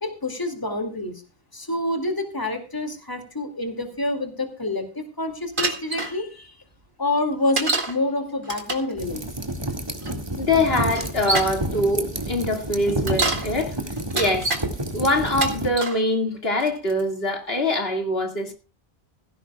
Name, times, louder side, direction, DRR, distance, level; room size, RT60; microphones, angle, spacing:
voice 1, 0.0-1.1 1.5-6.6 7.0-9.2, left 2 dB, 20° left, 2.5 m, -27 dB
Bicycle, 5.6-6.1 7.6-8.0 8.4-8.9 10.0-10.1 10.9-11.6 12.9-13.5 14.0-14.6 15.3-16.0 16.6-17.0, right 3 dB, 50° right, 2.2 m, -26 dB
sound 1, 9.0-15.7, right 1 dB, 25° right, 2.0 m, -30 dB
voice 2, 10.4-13.8 14.1-14.5 14.9-18.5, left 2 dB, 65° left, 2.5 m, -23 dB
17.5 x 16.0 x 2.3 m
omnidirectional pair, 1.1 m